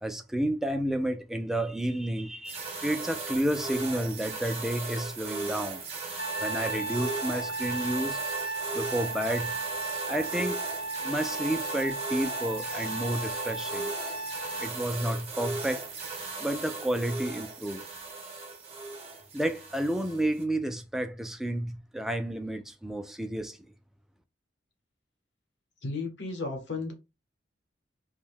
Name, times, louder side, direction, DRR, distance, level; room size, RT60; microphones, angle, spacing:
voice 1, 0.0-5.8 6.4-8.2 8.7-9.5 10.1-10.6 11.0-13.9 14.6-15.9 16.4-17.8 19.3-23.6, right 1 dB, ahead, 0.3 m, -31 dB
sound 1, 2.5-20.4, right 3 dB, 35° right, 0.7 m, -37 dB
Trumpet, 6.2-14.7, right 2 dB, 55° left, 0.5 m, -35 dB
voice 2, 25.8-26.9, left 3 dB, 70° left, 1.0 m, -34 dB
2.6 x 2.2 x 3.4 m
head